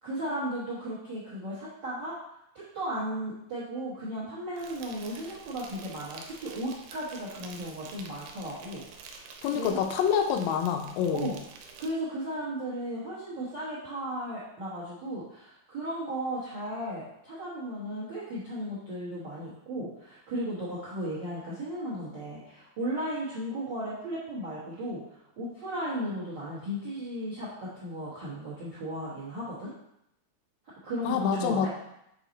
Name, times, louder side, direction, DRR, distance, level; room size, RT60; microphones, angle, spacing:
voice 1, 0.0-2.2 2.7-9.8 11.1-11.4 11.8-29.7 30.8-31.7, right 1 dB, 60° right, -7 dB, 1.2 m, -35 dB
Insect, 4.6-11.9, right 5 dB, 90° right, 2.4 m, -48 dB
voice 2, 9.4-11.3 31.0-31.7, left 7 dB, 80° left, 4 dB, 2.2 m, -27 dB
6.5 x 4.0 x 3.9 m, 0.80 s
omnidirectional pair, 4.0 m